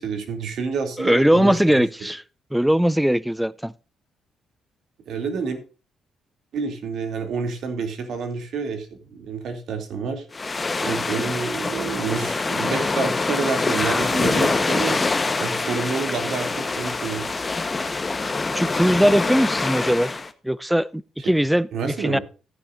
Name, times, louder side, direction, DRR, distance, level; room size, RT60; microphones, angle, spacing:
voice 1, 0.0-1.6 5.1-5.6 6.5-10.3 10.8-15.0 15.4-17.2 21.2-21.3 21.7-22.2, right 5 dB, 70° right, 2.6 m, -28 dB
voice 2, 1.0-2.2 2.5-3.7 18.5-20.2 20.4-22.2, equal, 5° right, 0.5 m, -20 dB
sound 1, 10.3-20.3, left 3 dB, 25° left, 1.0 m, -25 dB
14.5 x 10.0 x 2.5 m
cardioid pair, 90°, 0 cm